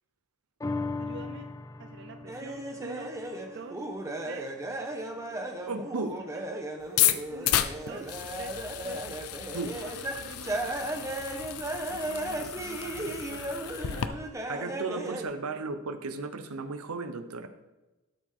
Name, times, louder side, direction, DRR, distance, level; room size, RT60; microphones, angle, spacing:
sound 1, 0.6-7.3 7.7-7.8, left 3 dB, 15° left, 0.4 m, -41 dB
voice 1, 1.0-1.5 1.8-3.1 3.5-3.8 4.2-4.5 6.1-6.5 7.3-9.2 9.7-11.4 11.9-14.8 15.5-15.7, right 4 dB, 55° right, 8 dB, 0.5 m, -47 dB
sound 2, 2.3-15.2, right 1 dB, 15° right, 0.8 m, -36 dB
voice 2, 5.7-6.1 9.5-9.8 14.5-17.5, right 3 dB, 85° right, 9 dB, 0.8 m, -35 dB
sound 3, 6.8-14.1, left 12 dB, 90° left, 0.5 m, -32 dB
12.5 x 5.0 x 3.7 m, 1.1 s
head